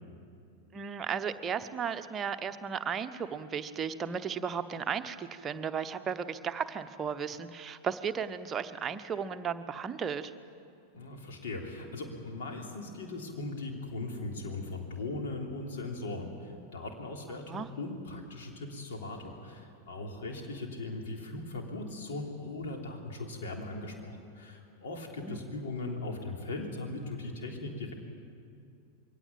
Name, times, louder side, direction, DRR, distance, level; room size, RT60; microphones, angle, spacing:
voice 1, 0.7-10.3 17.5-17.7 25.1-25.4, right 7 dB, 25° right, 9 dB, 1.0 m, -35 dB
voice 2, 10.9-27.9, left 2 dB, 60° left, 1 dB, 3.3 m, -39 dB
22.5 x 17.5 x 8.9 m, 2.5 s
figure-of-eight pair, 90°, 0 cm